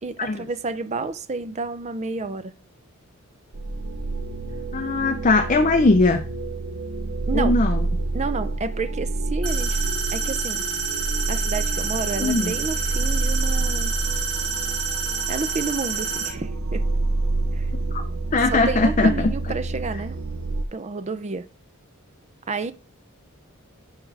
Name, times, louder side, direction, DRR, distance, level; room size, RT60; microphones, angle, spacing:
voice 1, 0.0-2.5 7.3-7.6 8.1-10.6 11.3-13.9 15.3-16.9 17.5-17.7 18.5-20.2 20.7-21.5 22.5-22.7, right 4 dB, 30° right, 0.5 m, -30 dB
sound 1, 3.5-20.6, right 2 dB, 65° right, 0.7 m, -28 dB
voice 2, 4.7-6.2 7.3-7.9 12.2-12.5 17.9-18.0 18.3-19.3, left 3 dB, 35° left, 0.6 m, -20 dB
sound 2, 9.4-16.3, right 5 dB, 85° right, 2.1 m, -28 dB
10.5 x 3.7 x 3.4 m
head